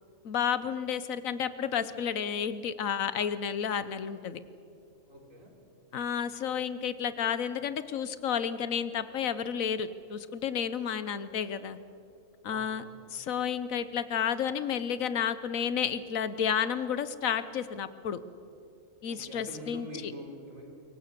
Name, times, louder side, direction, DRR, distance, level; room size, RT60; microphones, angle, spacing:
voice 1, 0.2-4.4 5.9-11.8 12.4-12.8 13.1-18.2 19.0-20.1, left 8 dB, 85° left, 14 dB, 1.4 m, -31 dB
voice 2, 5.1-5.5 12.5-12.9 19.1-20.7, equal, 75° right, 1 dB, 4.2 m, -45 dB
24.5 x 23.0 x 6.8 m, 2.7 s
omnidirectional pair, 1.4 m